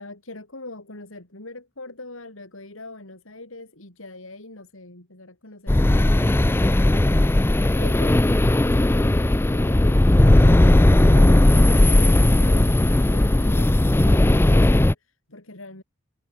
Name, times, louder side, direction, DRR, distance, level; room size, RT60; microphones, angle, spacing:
voice 1, 0.0-15.8, left 2 dB, 80° left, 4.5 m, -42 dB
sound 1, 5.7-14.9, left 1 dB, 10° left, 0.3 m, -17 dB
head